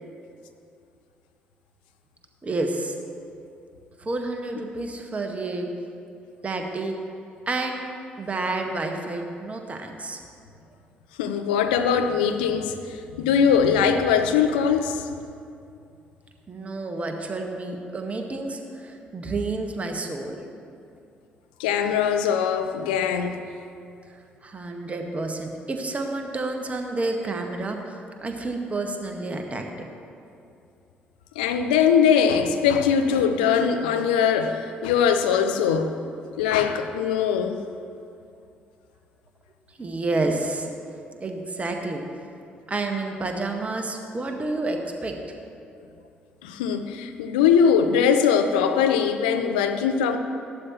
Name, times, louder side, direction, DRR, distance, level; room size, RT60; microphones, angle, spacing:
voice 1, 2.4-2.9 4.0-5.7 6.4-6.9 7.5-7.9 8.2-10.2 16.5-20.4 24.4-27.8 28.2-29.6 39.8-40.7 41.2-42.0 42.7-45.1, right 2 dB, 25° right, 3 dB, 1.4 m, -29 dB
voice 2, 11.2-12.7 13.1-15.1 21.6-23.4 31.4-36.0 36.4-37.6 46.4-50.2, left 7 dB, 75° left, 7 dB, 0.6 m, -21 dB
14.5 x 11.5 x 3.0 m, 2.5 s
figure-of-eight pair, 45°, 5 cm